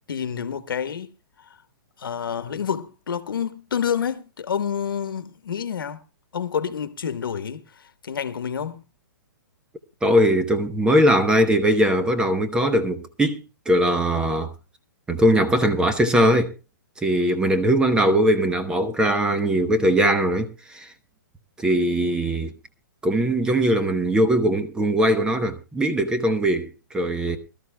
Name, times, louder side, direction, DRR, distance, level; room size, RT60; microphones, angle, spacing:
voice 1, 0.1-1.1 2.0-6.0 6.3-8.8, left 7 dB, 85° left, 1.4 m, -28 dB
voice 2, 10.0-13.4 13.7-14.5 15.1-16.5 17.0-20.9 21.6-22.5 23.0-27.4, equal, 5° right, 0.9 m, -20 dB
23.0 x 13.0 x 2.3 m
hypercardioid pair, 155°, 11 cm